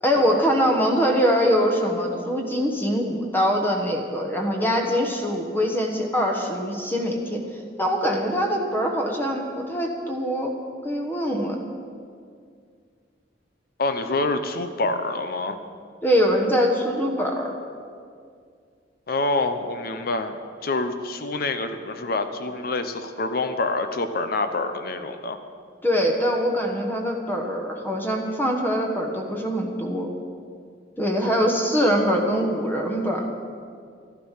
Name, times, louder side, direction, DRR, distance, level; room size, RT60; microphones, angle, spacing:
voice 1, 0.0-7.4 7.8-10.5 10.8-11.6 16.0-17.5 25.8-30.1 31.0-33.3, equal, 10° left, 1 dB, 1.2 m, -23 dB
voice 2, 13.8-15.6 19.1-25.4, left 2 dB, 55° left, 8 dB, 0.8 m, -26 dB
13.0 x 11.5 x 5.8 m, 2.2 s
head